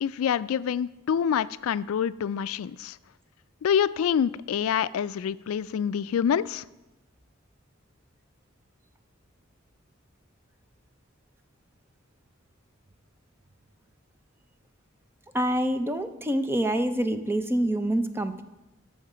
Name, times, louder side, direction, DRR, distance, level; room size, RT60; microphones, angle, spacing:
voice 1, 0.0-3.0 3.6-6.6, left 8 dB, 85° left, 17 dB, 0.3 m, -26 dB
voice 2, 15.3-18.4, right 1 dB, 10° right, 9 dB, 0.6 m, -26 dB
13.5 x 6.6 x 5.0 m, 1.0 s
head